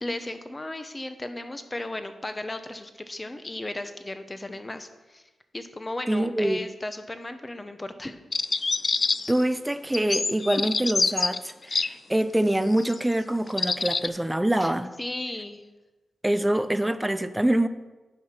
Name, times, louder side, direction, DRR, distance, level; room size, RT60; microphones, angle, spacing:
voice 1, 0.0-5.2 5.5-8.2 14.6-14.7 15.0-15.7, left 2 dB, 25° left, 9 dB, 0.8 m, -35 dB
voice 2, 6.1-6.6 9.3-14.9 16.2-17.7, right 1 dB, 10° right, 12 dB, 0.5 m, -25 dB
sound 1, 8.3-9.4 9.9-11.9 12.7-12.9 13.5-14.1, left 4 dB, 45° left, 0.3 m, -26 dB
9.8 x 5.8 x 4.4 m, 1.2 s
cardioid pair, 65°, 0 cm